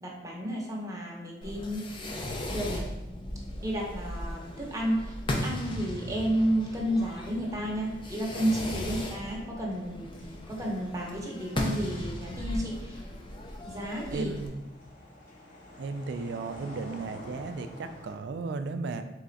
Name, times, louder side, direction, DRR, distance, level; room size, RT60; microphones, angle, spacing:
voice 1, 0.0-1.9 2.5-2.8 3.6-10.2 10.5-13.0 13.6-14.3, equal, 20° right, -2 dB, 0.8 m, -31 dB
Fireworks, 1.4-14.5, left 1 dB, 25° left, 0.4 m, -37 dB
sound 1, 9.3-18.1, left 1 dB, 50° left, 1.3 m, -50 dB
voice 2, 14.1-14.6 15.8-19.0, right 4 dB, 65° right, 9 dB, 0.3 m, -35 dB
3.6 x 3.2 x 3.9 m, 1.0 s
head